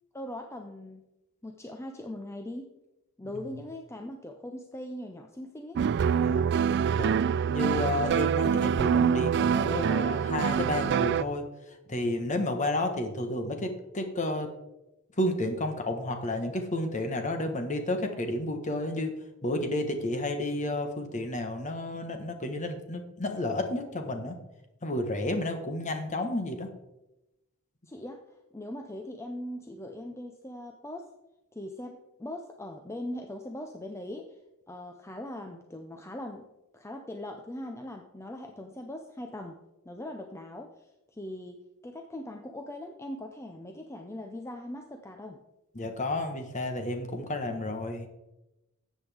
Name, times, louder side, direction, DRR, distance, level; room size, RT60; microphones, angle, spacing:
voice 1, 0.1-1.0 1.4-2.7 3.2-5.8 27.9-28.2 28.5-31.1 31.5-34.4 34.7-36.4 36.7-39.6 39.8-40.7 41.1-45.4, left 1 dB, 15° left, 4 dB, 0.6 m, -40 dB
sound 1, 5.8-11.2, right 7 dB, 50° right, 0.3 m, -25 dB
voice 2, 6.2-6.5 7.0-7.2 7.5-11.4 11.9-14.5 15.2-19.1 19.4-24.4 24.8-26.7 45.7-48.1, left 1 dB, 35° left, 6 dB, 1.3 m, -31 dB
13.0 x 8.1 x 3.5 m, 0.96 s
head